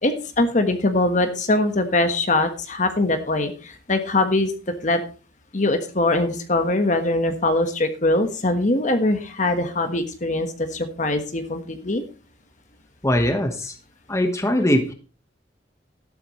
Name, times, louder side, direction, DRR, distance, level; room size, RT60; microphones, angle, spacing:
voice 1, 0.0-4.5 4.8-5.0 5.5-12.0, left 2 dB, 45° left, 7 dB, 1.4 m, -22 dB
voice 2, 13.0-13.8 14.1-14.9, left 1 dB, 15° left, 5 dB, 1.3 m, -21 dB
13.0 x 11.5 x 3.2 m, 0.35 s
head